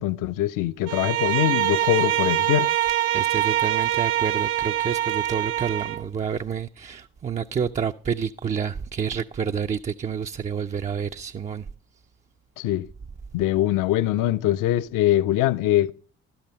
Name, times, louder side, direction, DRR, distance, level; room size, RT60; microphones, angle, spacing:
voice 1, 0.0-2.7 12.6-12.9 13.3-15.9, left 13 dB, 55° left, 0.6 m, -23 dB
Bowed string instrument, 0.9-6.1, right 13 dB, 70° right, 0.6 m, -24 dB
voice 2, 3.1-11.6, right 7 dB, 20° right, 0.4 m, -29 dB
12.0 x 5.9 x 5.2 m
hypercardioid pair, 45°, 39 cm